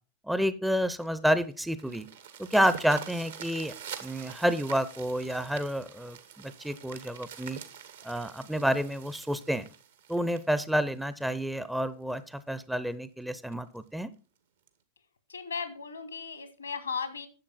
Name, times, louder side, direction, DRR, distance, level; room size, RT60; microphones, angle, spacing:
voice 1, 0.3-2.1 2.4-3.7 4.0-7.6 8.0-9.7 10.1-14.1, equal, 5° right, 14 dB, 0.6 m, -29 dB
sound 1, 1.0-11.5 12.1-12.2 12.6-12.7 13.1-13.2 13.5-13.8 14.7-14.8, right 8 dB, 65° right, 1.3 m, -46 dB
voice 2, 15.3-17.3, left 5 dB, 75° left, 11 dB, 1.5 m, -36 dB
10.5 x 7.5 x 3.9 m, 0.35 s
figure-of-eight pair, 90°, 0 cm